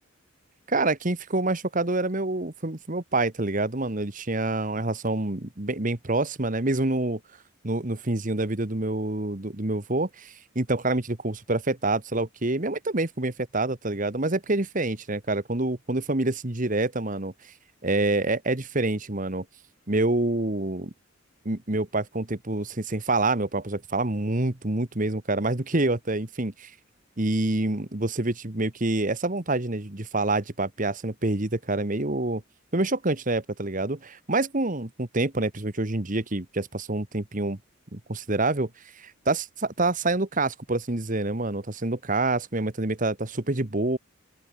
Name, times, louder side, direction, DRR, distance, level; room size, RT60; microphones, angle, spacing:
voice 1, 0.7-7.2 7.6-17.3 17.8-19.4 19.9-20.9 21.4-26.7 27.2-32.4 32.7-37.6 37.9-38.7 38.9-44.0, right 2 dB, 40° right, 1.5 m, -27 dB
open air
head